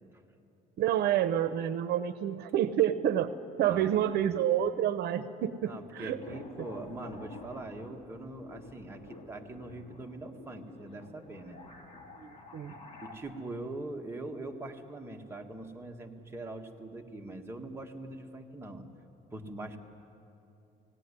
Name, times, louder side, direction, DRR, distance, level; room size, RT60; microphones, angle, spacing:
voice 1, 0.8-3.3 3.6-6.2 12.2-12.7, right 10 dB, 75° right, 12 dB, 0.7 m, -28 dB
voice 2, 3.6-4.2 5.6-11.6 12.7-18.9 19.3-19.8, right 2 dB, 15° right, 2 dB, 1.7 m, -42 dB
sound 1, 6.2-13.2, left 2 dB, 35° left, 3.2 m, -49 dB
17.5 x 17.5 x 9.9 m, 2.7 s
cardioid pair, 110°, 17 cm